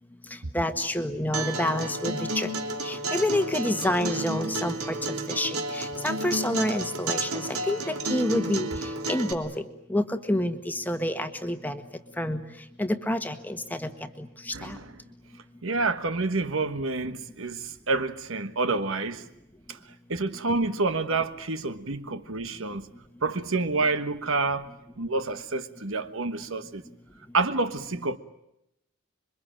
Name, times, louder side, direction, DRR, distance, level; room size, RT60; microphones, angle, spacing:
voice 1, 0.3-2.5 2.8-11.8 12.2-12.4 12.8-14.8, left 1 dB, 10° left, 1.5 m, -29 dB
Acoustic guitar, 1.3-9.3, right 2 dB, 75° right, 3.0 m, -31 dB
voice 2, 14.5-14.8 15.6-19.2 19.7-19.8 20.1-22.9 23.2-24.7 25.0-26.8 27.3-28.2, right 3 dB, 60° right, 1.4 m, -28 dB
27.0 x 23.5 x 9.0 m
head